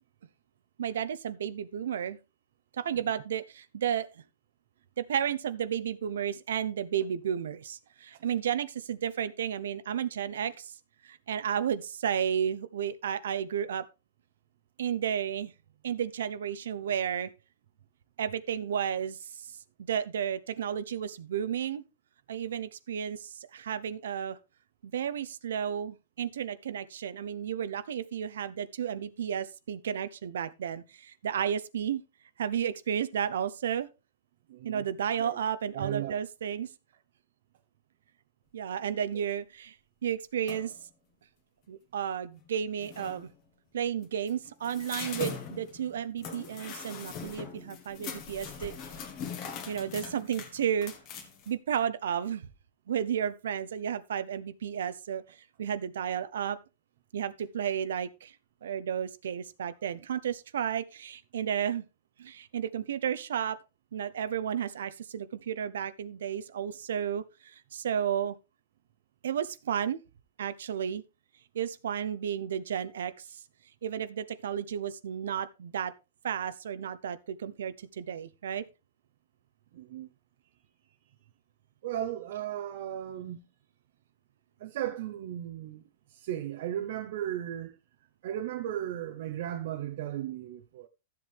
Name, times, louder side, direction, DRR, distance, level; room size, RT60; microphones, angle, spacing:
voice 1, 0.8-2.2 2.8-4.1 5.0-10.7 11.0-13.9 14.8-15.5 15.8-17.3 18.2-19.5 19.9-21.8 22.3-24.4 24.8-32.0 32.4-33.9 34.6-36.7 38.5-39.7 40.0-40.7 41.7-43.3 43.7-48.7 49.7-50.9 51.5-52.5 52.9-55.2 55.6-56.6 57.1-58.3 58.6-61.8 62.2-63.6 63.9-68.4 69.2-70.0 70.4-71.0 71.5-73.3 73.8-75.9 76.2-78.6, right 8 dB, 80° right, 0.8 m, -32 dB
voice 2, 34.5-34.8 35.2-35.4 35.7-36.1 79.7-80.1 81.8-83.5 84.6-85.8 86.1-87.7 88.2-90.9, right 11 dB, 50° right, 0.8 m, -36 dB
sound 1, 40.5-40.8 42.4-42.5 42.8-43.3 44.0-51.5, left 6 dB, 25° left, 1.6 m, -41 dB
13.0 x 7.6 x 3.5 m
supercardioid pair, 175°, 0 cm